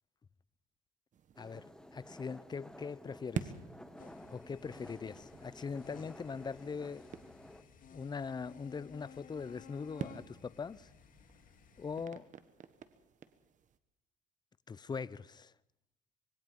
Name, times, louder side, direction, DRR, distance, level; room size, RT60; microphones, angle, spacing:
sound 1, 1.1-13.8, right 7 dB, 50° right, 1.5 m, -49 dB
sound 2, 1.3-7.6, left 1 dB, 5° left, 1.4 m, -53 dB
voice 1, 1.9-3.5 4.3-7.0 7.9-10.9 11.8-12.3 14.7-15.5, left 5 dB, 25° left, 0.7 m, -41 dB
sound 3, 4.0-12.1, left 7 dB, 55° left, 2.0 m, -57 dB
25.5 x 21.5 x 5.4 m
cardioid pair, 110°, 17 cm